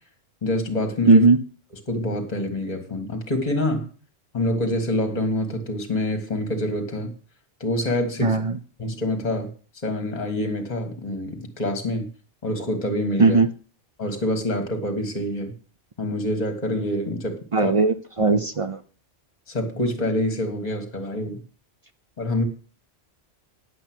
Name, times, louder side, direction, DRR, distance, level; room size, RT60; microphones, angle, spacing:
voice 1, 0.4-1.2 1.9-3.9 4.3-7.1 7.6-8.4 8.8-9.5 9.8-12.1 12.4-13.4 14.0-15.5 16.0-17.7 18.2-18.4 19.5-21.4 22.2-22.4, left 1 dB, 35° left, 5 dB, 1.7 m, -26 dB
voice 2, 1.1-1.4 8.2-8.6 13.2-13.5 17.5-18.8, right 4 dB, 40° right, 11 dB, 0.4 m, -18 dB
9.9 x 7.9 x 6.0 m, 0.39 s
omnidirectional pair, 1.2 m